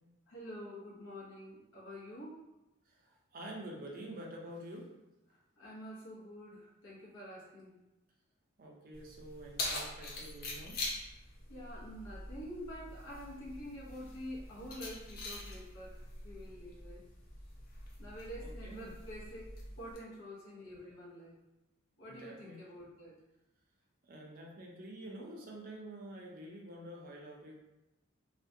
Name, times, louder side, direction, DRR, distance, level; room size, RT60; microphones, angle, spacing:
voice 1, 0.3-2.4 5.6-7.8 11.5-15.9 16.2-17.0 18.0-19.4 19.7-21.4 22.0-23.1, equal, 75° left, -6 dB, 0.8 m, -47 dB
voice 2, 2.9-4.9 8.6-10.8 18.4-18.9 22.1-22.6 24.0-27.5, right 1 dB, 45° right, -1 dB, 0.4 m, -48 dB
Keys jangling, 8.9-20.0, left 2 dB, 45° left, 0.5 m, -44 dB
2.4 x 2.1 x 2.6 m, 0.97 s
head